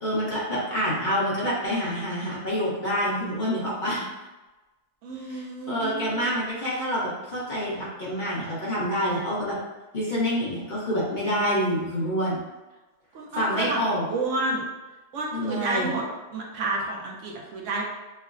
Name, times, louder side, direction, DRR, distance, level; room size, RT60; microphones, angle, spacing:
voice 1, 0.0-4.0 5.2-9.6 9.9-12.4 13.3-14.1 15.3-15.9, equal, 40° left, -7 dB, 0.9 m, -27 dB
voice 2, 5.0-6.3 13.1-13.8 14.1-14.7 15.1-16.0 16.3-17.8, right 2 dB, 70° right, -1 dB, 0.9 m, -30 dB
5.4 x 2.1 x 2.4 m, 1.1 s
omnidirectional pair, 1.4 m